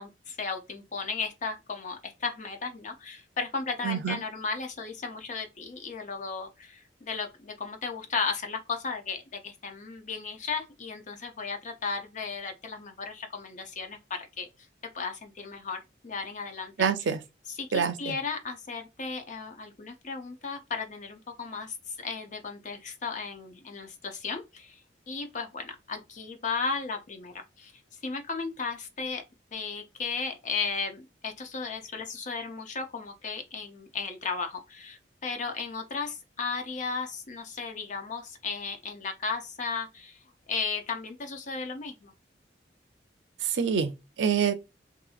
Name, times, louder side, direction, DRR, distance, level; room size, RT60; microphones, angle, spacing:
voice 1, 0.0-14.5 14.9-16.7 17.6-24.8 25.1-27.7 28.0-29.2 29.5-40.2 40.5-42.1, left 4 dB, 45° left, 0.5 m, -35 dB
voice 2, 3.8-4.2 16.8-17.2 17.7-18.2 43.4-44.5, right 6 dB, 90° right, 0.5 m, -26 dB
2.8 x 2.6 x 2.3 m
head